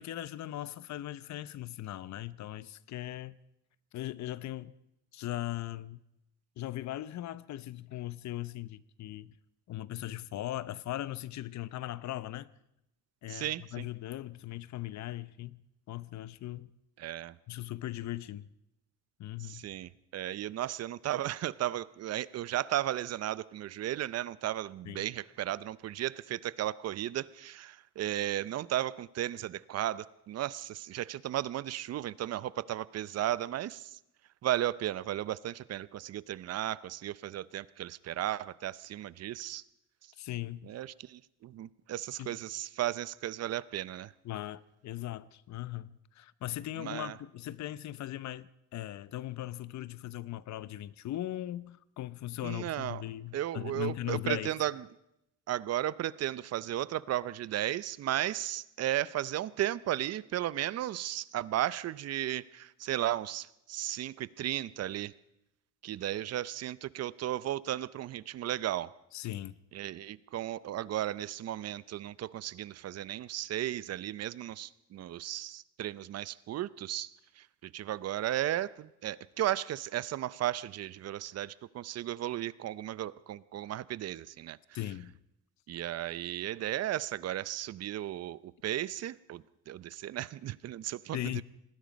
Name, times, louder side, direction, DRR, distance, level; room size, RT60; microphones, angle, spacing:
voice 1, 0.0-3.4 3.9-4.7 5.1-6.0 6.6-9.3 9.7-12.5 13.2-15.6 15.9-16.7 17.5-18.5 19.2-19.7 24.9-25.1 40.2-40.7 42.2-42.4 44.2-54.5 69.1-69.6 84.7-85.2 91.1-91.4, left 14 dB, 55° left, 0.8 m, -39 dB
voice 2, 13.3-13.9 17.0-17.3 19.4-33.9 34.4-39.6 40.6-44.1 46.8-47.2 52.4-53.0 53.3-54.8 55.5-65.1 65.8-68.9 69.7-77.1 77.4-84.6 85.7-91.4, right 13 dB, 50° right, 0.7 m, -35 dB
26.5 x 19.5 x 5.2 m
cardioid pair, 155°, 33 cm